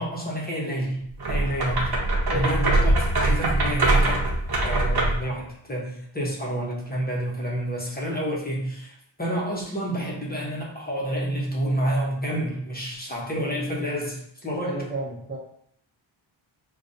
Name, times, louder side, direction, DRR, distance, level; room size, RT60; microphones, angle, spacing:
voice 1, 0.0-1.9 2.3-4.3 4.5-8.9 9.2-14.9, right 1 dB, 20° left, -4 dB, 0.8 m, -29 dB
sound 1, 1.2-5.3, right 2 dB, 50° right, 0.9 m, -22 dB
voice 2, 14.6-15.4, right 2 dB, 20° right, -4 dB, 0.7 m, -32 dB
5.1 x 2.3 x 2.6 m, 0.69 s
wide cardioid pair, 95°, 48 cm